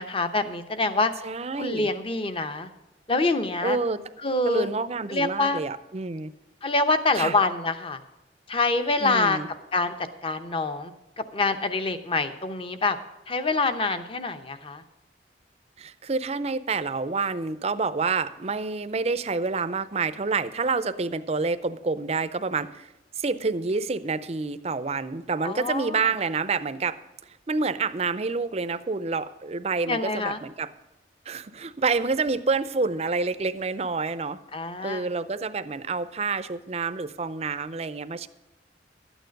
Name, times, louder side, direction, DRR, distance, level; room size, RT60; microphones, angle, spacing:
voice 1, 0.0-1.1 1.6-2.7 3.1-3.8 4.2-4.7 5.1-5.6 6.6-8.0 8.5-9.4 9.7-9.9 10.2-10.9 11.2-13.0 13.3-14.8 25.4-26.1 29.9-30.4 34.5-35.1, left 3 dB, 30° left, 9 dB, 0.8 m, -25 dB
voice 2, 1.2-1.9 3.6-4.0 4.4-6.3 7.2-7.4 9.0-9.5 15.8-27.0 27.3-30.7 31.3-34.4 34.8-38.3, right 4 dB, 35° right, 14 dB, 0.5 m, -28 dB
12.0 x 9.1 x 5.2 m, 0.98 s
head